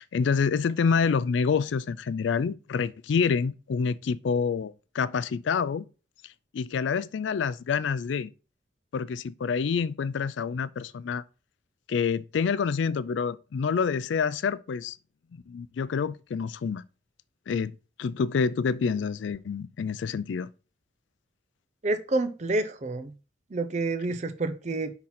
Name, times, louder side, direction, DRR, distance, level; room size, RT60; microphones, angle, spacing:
voice 1, 0.0-5.9 6.5-8.3 8.9-11.2 11.9-15.0 15.3-16.8 17.5-17.7 18.0-20.5, left 5 dB, 80° left, 0.4 m, -27 dB
voice 2, 21.8-23.1 23.5-24.9, right 2 dB, 35° right, 0.5 m, -28 dB
5.8 x 3.8 x 5.7 m
head